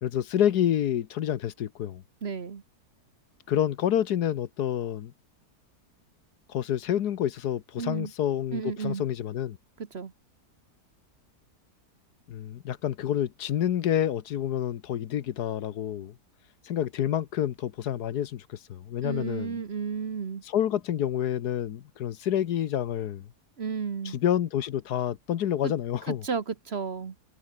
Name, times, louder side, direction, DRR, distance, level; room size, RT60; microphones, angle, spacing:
voice 1, 0.0-2.0 3.5-5.1 6.5-9.6 12.3-16.1 16.6-19.6 20.5-23.3 24.1-26.2, left 10 dB, 70° left, 1.4 m, -28 dB
voice 2, 2.2-2.6 7.8-8.1 8.5-9.0 9.8-10.1 19.0-20.4 23.6-24.2 25.6-25.7 26.1-27.1, right 6 dB, 40° right, 1.3 m, -33 dB
omnidirectional pair, 1.8 m